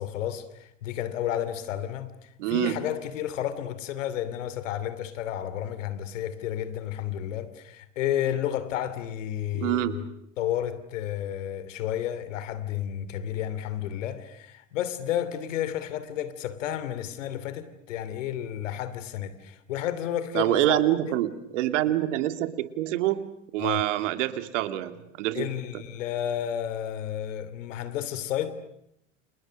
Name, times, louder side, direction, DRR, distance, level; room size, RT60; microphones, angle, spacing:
voice 1, 0.0-10.1 10.4-20.8 21.1-21.3 23.6-23.8 25.3-28.5, left 11 dB, 80° left, 2.9 m, -31 dB
voice 2, 2.4-2.8 9.5-10.0 20.3-23.2 23.5-25.5 25.7-25.8, right 14 dB, 75° right, 2.5 m, -26 dB
30.0 x 28.5 x 6.5 m
hypercardioid pair, 90°, 37 cm